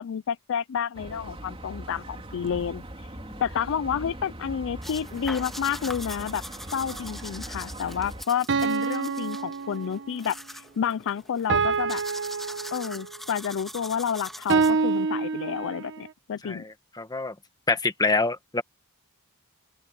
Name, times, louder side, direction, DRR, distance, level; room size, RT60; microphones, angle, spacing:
voice 1, 0.0-2.8 3.4-6.4 6.7-12.0 12.7-16.6, left 7 dB, 60° left, 0.4 m, -30 dB
sound 1, 0.9-8.2, right 1 dB, 25° right, 3.1 m, -40 dB
sound 2, 4.8-15.0, equal, ahead, 2.2 m, -42 dB
sound 3, 6.9-7.0 8.5-10.2 11.5-13.2 14.5-16.0, right 4 dB, 55° right, 1.3 m, -27 dB
voice 2, 16.4-17.3 17.7-18.6, left 3 dB, 15° left, 1.6 m, -26 dB
open air
head